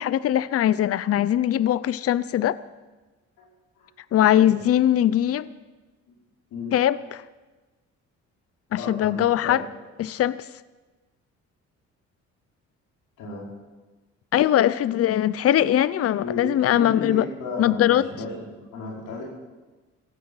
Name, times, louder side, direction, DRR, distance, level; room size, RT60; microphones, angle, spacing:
voice 1, 0.0-2.6 4.1-5.5 6.7-7.2 8.7-9.6 10.0-10.4 14.3-17.3 17.6-18.1, left 11 dB, 50° left, 18 dB, 0.6 m, -21 dB
voice 2, 8.7-9.6 13.2-13.5 16.2-19.2, left 2 dB, 85° left, -3 dB, 5.3 m, -34 dB
16.0 x 15.5 x 5.7 m, 1.2 s
cardioid pair, 90°, 30 cm